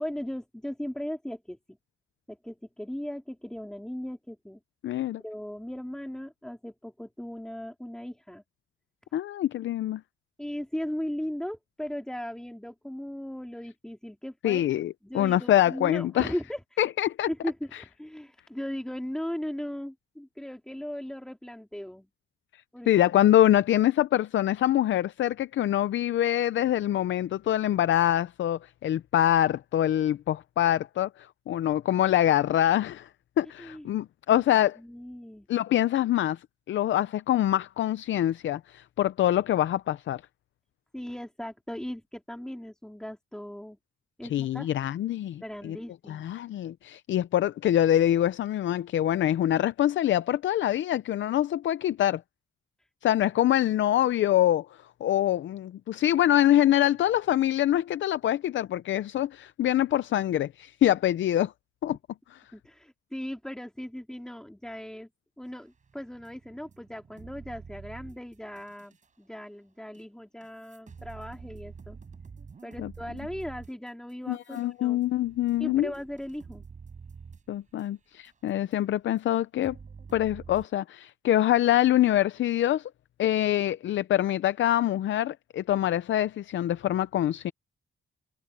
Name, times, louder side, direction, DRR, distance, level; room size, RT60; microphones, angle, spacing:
voice 1, 0.0-1.6 2.3-4.6 5.2-8.4 10.4-14.6 15.0-16.8 17.3-22.1 22.7-22.9 33.6-33.9 34.8-35.5 40.9-43.8 44.2-44.7 45.4-46.4 62.5-65.1 65.4-72.0 72.6-75.0 75.6-76.7, equal, 5° left, 3.9 m, -37 dB
voice 2, 4.8-5.2 9.1-10.0 14.4-16.3 16.8-17.3 17.7-17.8 22.5-33.1 33.4-34.8 35.5-40.2 44.3-45.8 46.1-52.2 53.0-54.7 55.0-61.5 61.8-62.0 62.3-62.4 72.8-72.9 74.3-75.9 77.5-79.8 80.1-82.9 83.2-87.5, left 12 dB, 80° left, 0.5 m, -25 dB
sound 1, 65.7-69.1 69.9-70.0 70.4-78.7 79.2-79.3 79.6-80.6, right 5 dB, 40° right, 6.2 m, -47 dB
wide cardioid pair, 145°, 19 cm